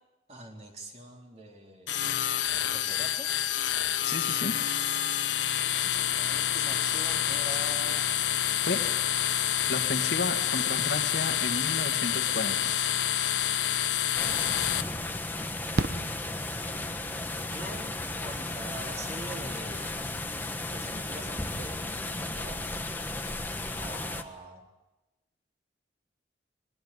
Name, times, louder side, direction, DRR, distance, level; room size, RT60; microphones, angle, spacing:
voice 1, 0.3-2.1 2.6-3.3 5.5-8.0 16.5-16.8 17.4-19.9 20.7-22.6 23.8-24.7, right 1 dB, 35° right, 1 dB, 4.1 m, -44 dB
sound 1, 1.9-14.8, left 10 dB, 80° left, 1.1 m, -28 dB
voice 2, 4.0-4.5 8.7-8.8 9.7-12.7, left 2 dB, 60° left, 5 dB, 2.0 m, -33 dB
Fireworks, 14.1-14.2 15.7-17.1 18.8-18.9 19.1-19.2, right 2 dB, 55° right, 0.9 m, -33 dB
sound 2, 14.2-24.2, left 2 dB, 10° left, 1.3 m, -35 dB
22.5 x 21.0 x 9.4 m, 1.0 s
head